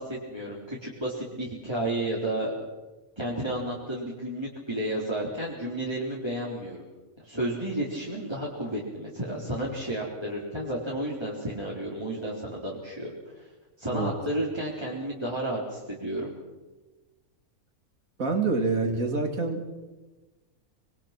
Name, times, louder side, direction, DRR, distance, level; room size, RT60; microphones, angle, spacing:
voice 1, 0.0-2.5 3.2-6.8 7.2-13.5 13.8-16.3, right 1 dB, 15° right, -5 dB, 4.1 m, -32 dB
voice 2, 18.2-19.6, right 3 dB, 65° right, 4 dB, 3.5 m, -26 dB
26.0 x 23.5 x 6.1 m, 1.2 s
omnidirectional pair, 1.6 m